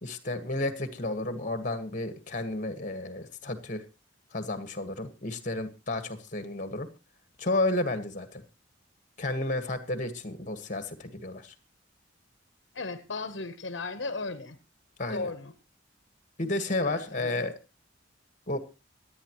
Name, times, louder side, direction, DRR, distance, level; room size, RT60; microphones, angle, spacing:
voice 1, 0.0-3.9 4.3-6.9 7.4-8.4 9.2-11.5 15.0-15.3 16.4-17.5 18.5-18.6, left 2 dB, 40° left, 10 dB, 1.6 m, -32 dB
voice 2, 12.7-14.6 15.1-15.5 16.7-17.4, left 3 dB, 65° left, 10 dB, 1.1 m, -36 dB
26.0 x 9.3 x 3.1 m, 0.29 s
head